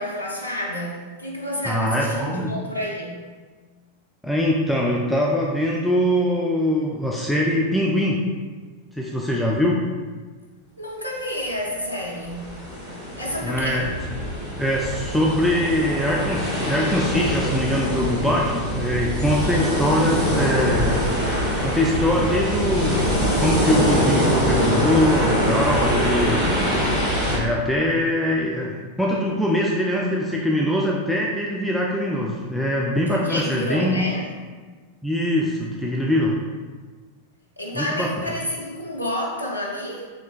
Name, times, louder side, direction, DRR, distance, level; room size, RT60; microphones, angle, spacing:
voice 1, 0.0-3.2 10.8-12.6 13.2-13.9 19.4-19.9 32.9-34.3 37.6-40.1, left 1 dB, 90° right, -3 dB, 0.4 m, -30 dB
voice 2, 1.6-2.5 4.2-8.2 8.9-9.8 13.4-13.9 14.6-21.0 21.6-23.1 23.4-26.4 27.3-34.0 35.0-36.4 37.7-38.1, left 1 dB, ahead, -3 dB, 0.3 m, -22 dB
sound 1, 12.0-27.4, equal, 30° left, 1.4 m, -23 dB
3.2 x 3.1 x 2.3 m, 1.5 s
figure-of-eight pair, 90°, 0 cm